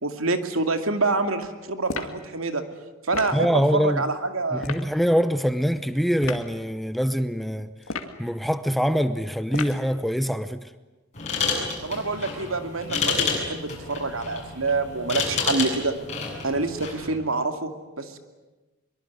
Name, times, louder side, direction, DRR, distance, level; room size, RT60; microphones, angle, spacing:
voice 1, 0.0-2.6 3.0-4.7 11.8-16.0 16.4-18.2, right 3 dB, 80° right, 2.5 m, -27 dB
sound 1, 1.9-2.2 3.1-3.4 4.6-4.9 6.2-6.5 7.8-8.2 9.5-9.9, left 4 dB, 80° left, 2.2 m, -33 dB
voice 2, 3.3-4.0 4.5-7.7 8.2-10.7, equal, ahead, 0.8 m, -24 dB
sound 2, 11.1-17.1, left 5 dB, 35° left, 7.9 m, -29 dB
24.0 x 23.5 x 9.5 m
head